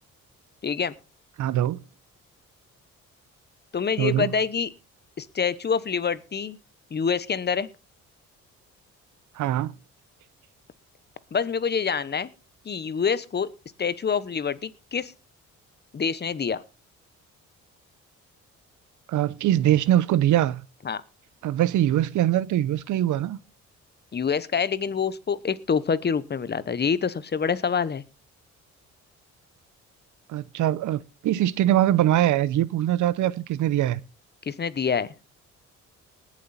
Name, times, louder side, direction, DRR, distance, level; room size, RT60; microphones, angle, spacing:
voice 1, 0.6-0.9 3.7-4.7 5.2-6.6 6.9-7.7 11.3-12.3 12.6-13.5 13.8-15.1 15.9-16.6 20.8-21.0 24.1-28.0 34.5-35.1, left 6 dB, 35° left, 1.0 m, -26 dB
voice 2, 1.4-1.8 4.0-4.3 9.4-9.7 19.1-20.6 21.4-23.4 30.3-34.0, right 12 dB, 75° right, 0.8 m, -22 dB
19.5 x 7.5 x 4.2 m
cardioid pair, 90°, 30 cm